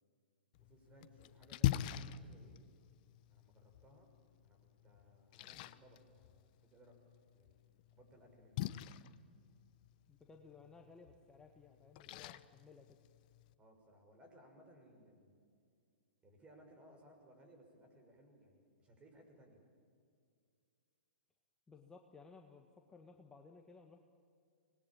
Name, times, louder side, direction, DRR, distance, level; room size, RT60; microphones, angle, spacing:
Splash splatter, 0.5-13.5, left 14 dB, 45° left, 0.9 m, -44 dB
voice 1, 0.6-2.6 3.3-4.1 4.4-7.0 7.3-7.6 7.9-8.6 13.6-15.4 16.2-19.6, right 1 dB, 20° right, 3 dB, 6.4 m, -63 dB
voice 2, 10.1-13.0 21.7-24.0, left 4 dB, 10° left, 3 dB, 1.5 m, -59 dB
25.0 x 20.0 x 8.9 m, 2.3 s
hypercardioid pair, 115°, 6 cm